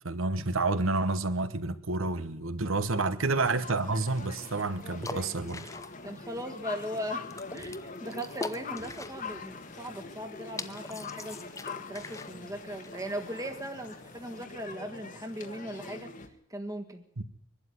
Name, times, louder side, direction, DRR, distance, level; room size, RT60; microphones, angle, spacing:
voice 1, 0.0-5.7 17.2-17.3, right 3 dB, 65° right, 1.2 m, -29 dB
sound 1, 3.3-16.3, left 3 dB, 35° left, 1.4 m, -43 dB
sound 2, 3.9-14.4, left 3 dB, 15° left, 0.7 m, -46 dB
voice 2, 6.0-7.3 7.5-16.1 16.5-17.0, equal, 15° right, 1.5 m, -38 dB
22.5 x 12.0 x 9.7 m
head